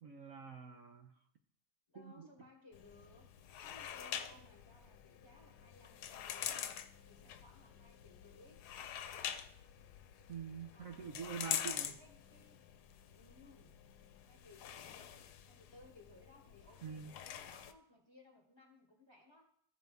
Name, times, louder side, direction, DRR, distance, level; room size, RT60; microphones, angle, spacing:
voice 1, 0.0-1.1 2.0-2.3 10.3-11.9 16.8-17.1, right 7 dB, 65° right, 4 dB, 1.0 m, -46 dB
voice 2, 1.9-3.3 3.6-6.8 7.0-8.6 10.7-11.5 11.8-12.6 13.1-13.8 14.3-19.5, left 2 dB, 20° left, 1 dB, 1.1 m, -62 dB
sound 1, 2.7-17.7, left 9 dB, 90° left, 1.2 m, -46 dB
14.5 x 5.3 x 3.4 m, 0.65 s
omnidirectional pair, 1.7 m